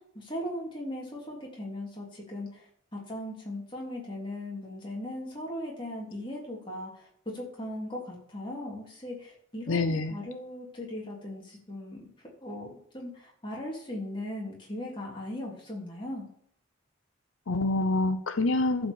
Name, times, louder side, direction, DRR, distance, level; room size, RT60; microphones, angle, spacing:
voice 1, 0.1-2.5 2.9-6.9 7.2-12.1 12.4-16.3, left 1 dB, 25° left, -3 dB, 3.1 m, -38 dB
voice 2, 9.7-10.2 17.5-18.9, left 2 dB, 85° left, 9 dB, 0.8 m, -26 dB
12.0 x 5.1 x 7.2 m, 0.65 s
head